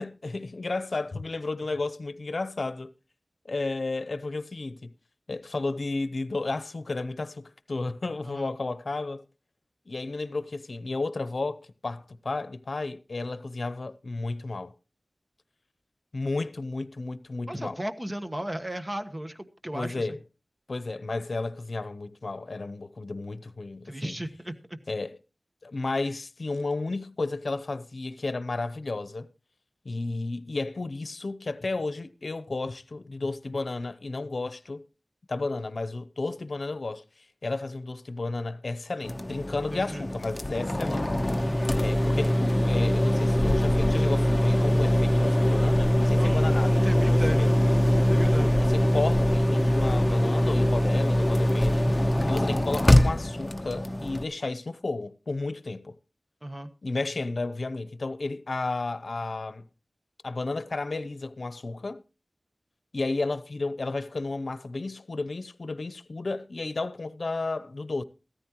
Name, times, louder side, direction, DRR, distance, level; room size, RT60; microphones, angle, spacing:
voice 1, 0.0-2.9 3.4-4.9 5.3-9.2 9.9-14.7 16.1-17.8 19.7-20.2 20.7-24.1 24.9-25.2 25.6-29.3 29.8-34.8 35.3-41.1 41.8-47.6 48.2-51.9 52.3-56.0 56.8-59.7 60.2-62.0 62.9-68.0, left 3 dB, 75° left, 0.7 m, -32 dB
voice 2, 17.5-20.1 23.8-24.8 39.7-40.1 46.2-47.4 48.1-48.5 56.4-56.7, right 1 dB, 25° right, 1.3 m, -35 dB
sound 1, 39.0-54.2, equal, 25° left, 0.9 m, -23 dB
15.5 x 13.5 x 3.0 m
wide cardioid pair, 60°, 0 cm